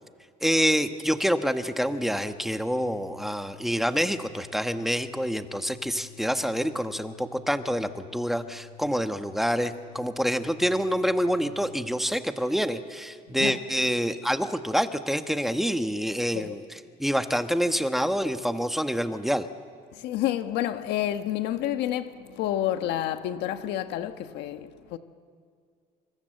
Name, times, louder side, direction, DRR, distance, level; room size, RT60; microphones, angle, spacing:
voice 1, 0.4-19.5, equal, ahead, 1.2 m, -27 dB
Organ, 1.7-12.1, left 12 dB, 70° left, 6.6 m, -51 dB
voice 2, 13.3-13.6 16.3-16.5 19.9-25.0, left 12 dB, 90° left, 1.3 m, -29 dB
26.0 x 26.0 x 7.9 m
cardioid pair, 110°, 17 cm